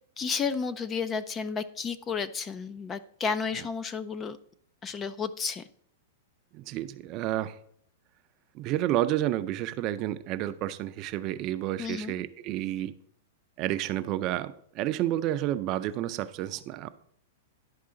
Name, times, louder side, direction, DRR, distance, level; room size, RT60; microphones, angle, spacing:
voice 1, 0.2-4.4 4.8-5.6 11.8-12.1, left 5 dB, 20° left, 15 dB, 0.4 m, -32 dB
voice 2, 6.5-7.6 8.5-13.0 13.6-16.9, right 13 dB, 35° right, 12 dB, 0.5 m, -30 dB
11.5 x 4.8 x 3.8 m, 0.65 s
hypercardioid pair, 145°, 0 cm